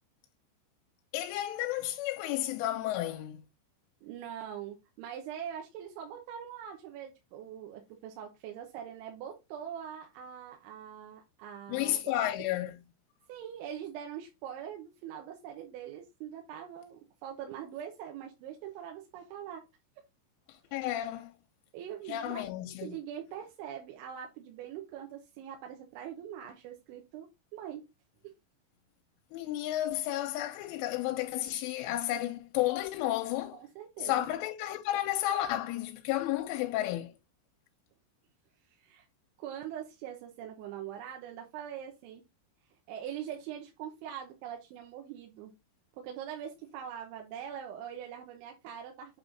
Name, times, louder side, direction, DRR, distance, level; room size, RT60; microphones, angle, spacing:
voice 1, 1.1-3.4 11.7-12.7 20.7-21.3 22.1-23.0 29.3-33.6 34.0-37.1, left 14 dB, 85° left, 3.1 m, -32 dB
voice 2, 4.0-12.3 13.3-19.7 21.7-22.4 22.8-27.9 28.2-28.3 33.5-34.3 38.7-39.1 39.4-42.3 42.9-45.5 45.9-49.2, right 9 dB, 80° right, 3.2 m, -43 dB
8.4 x 3.1 x 4.0 m
omnidirectional pair, 5.7 m